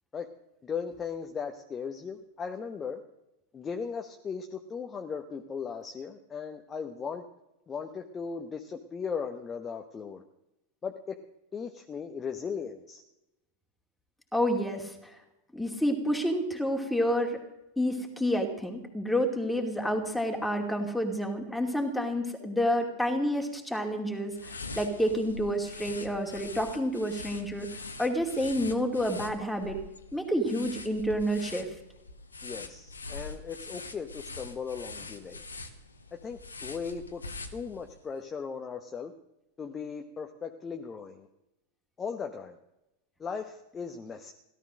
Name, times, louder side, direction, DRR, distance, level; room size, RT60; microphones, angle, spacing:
voice 1, 0.6-3.0 3.5-7.2 7.7-10.2 10.8-11.2 11.5-13.0 32.4-35.4 36.2-37.2 37.5-39.1 39.6-41.3 42.0-42.6 43.2-44.3, left 6 dB, 20° left, 5 dB, 1.0 m, -37 dB
voice 2, 14.3-15.2 15.5-17.4 17.8-27.7 28.0-29.8 30.1-31.7, equal, ahead, 3 dB, 2.6 m, -29 dB
sound 1, 24.3-38.0, left 3 dB, 75° left, 1.5 m, -44 dB
16.5 x 12.5 x 6.4 m, 0.91 s
figure-of-eight pair, 90°, 0 cm